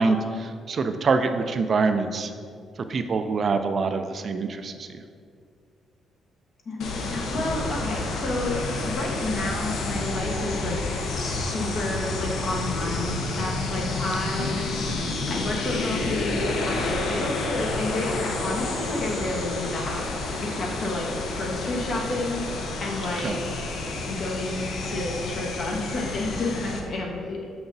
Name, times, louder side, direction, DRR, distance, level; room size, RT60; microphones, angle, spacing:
voice 1, 0.0-2.3 2.9-5.0 14.4-14.5 23.2-23.4, right 4 dB, 45° right, 8 dB, 0.4 m, -25 dB
voice 2, 6.6-10.8 11.2-14.7 15.2-20.1 20.4-23.3 24.1-27.4, left 2 dB, 60° left, -2 dB, 1.2 m, -30 dB
sound 1, 6.8-26.8, left 2 dB, 80° left, 0.7 m, -30 dB
6.6 x 6.0 x 2.7 m, 2.2 s
cardioid pair, 90°, 0 cm